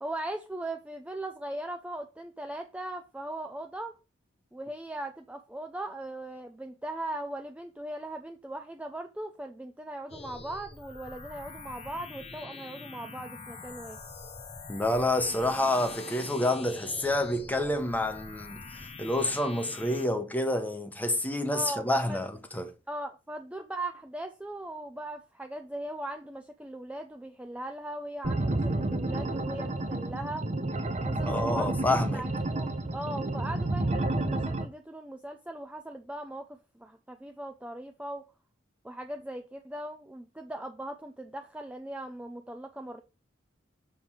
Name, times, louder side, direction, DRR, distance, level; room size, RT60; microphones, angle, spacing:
voice 1, 0.0-3.9 4.5-14.0 21.5-22.2 22.9-30.5 31.0-31.7 32.1-38.2 38.8-43.0, right 1 dB, 5° right, 0.4 m, -39 dB
sound 1, 10.1-20.1, left 4 dB, 30° left, 0.9 m, -44 dB
voice 2, 14.7-22.7 31.2-32.2, left 1 dB, 10° left, 0.8 m, -28 dB
sound 2, 28.2-34.6, right 2 dB, 35° right, 0.7 m, -30 dB
7.2 x 3.2 x 5.9 m
head